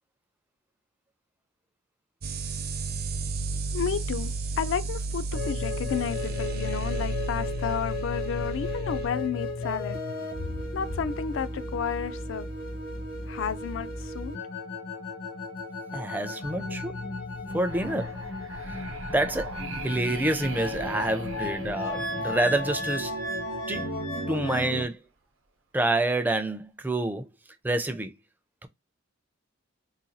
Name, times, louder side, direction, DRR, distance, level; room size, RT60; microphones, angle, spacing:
sound 1, 2.2-9.1, right 3 dB, 50° right, 0.6 m, -32 dB
voice 1, 3.7-10.0 10.7-12.5 13.3-14.3, left 7 dB, 65° left, 0.4 m, -32 dB
sound 2, 5.3-24.8, left 2 dB, 85° left, 1.4 m, -34 dB
voice 2, 15.9-17.0 17.5-18.2 18.7-18.8 19.1-19.6 19.8-23.2 23.7-23.9 24.3-25.0 25.7-27.3 27.6-28.2, right 2 dB, 10° right, 0.4 m, -28 dB
sound 3, 17.7-23.6, right 4 dB, 85° right, 0.7 m, -41 dB
4.0 x 2.3 x 2.7 m
head